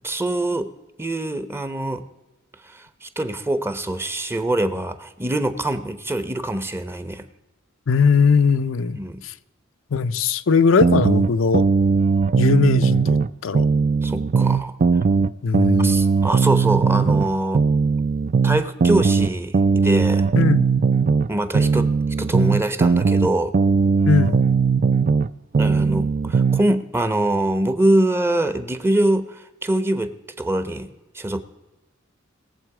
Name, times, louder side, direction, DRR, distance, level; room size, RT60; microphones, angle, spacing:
voice 1, 0.0-0.7 1.0-2.0 2.6-7.3 8.9-9.2 14.0-14.8 15.8-17.6 18.4-20.3 21.3-21.9 22.2-23.5 25.6-31.4, right 1 dB, 10° right, 0.7 m, -24 dB
voice 2, 7.9-9.3 9.9-11.7 12.4-13.6 15.4-16.0 20.4-20.7 24.1-24.4, left 5 dB, 80° left, 0.5 m, -19 dB
sound 1, 10.8-13.3 13.5-17.3 17.5-21.3 21.5-25.3 25.5-26.6, right 5 dB, 40° right, 0.4 m, -18 dB
20.5 x 7.5 x 4.8 m
head